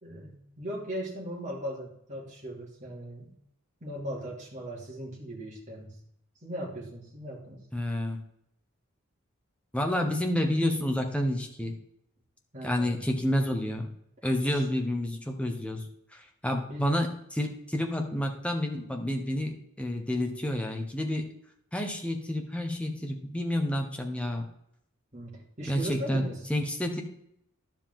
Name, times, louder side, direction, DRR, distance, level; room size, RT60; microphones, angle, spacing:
voice 1, 0.0-3.3 3.8-6.0 6.4-7.6 12.5-13.3 14.5-14.7 16.7-16.9 25.1-26.4, equal, 35° right, -3 dB, 2.8 m, -39 dB
voice 2, 7.7-8.2 9.7-11.8 12.6-13.9 14.2-21.2 21.7-24.5 25.7-26.2 26.5-27.0, left 1 dB, 5° left, 2 dB, 1.2 m, -29 dB
11.0 x 7.5 x 3.8 m, 0.74 s
head